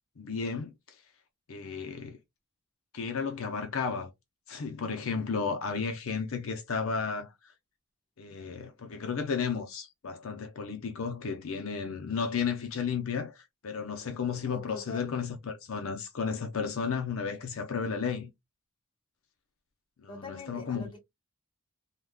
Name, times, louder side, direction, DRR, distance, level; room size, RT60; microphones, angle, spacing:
voice 1, 0.2-1.0 1.5-2.2 2.9-4.1 4.5-7.5 8.2-18.3 20.0-20.9, left 5 dB, 65° left, 0.5 m, -33 dB
voice 2, 14.4-15.1 20.1-21.0, left 3 dB, 20° left, 1.0 m, -44 dB
3.5 x 2.2 x 2.2 m
head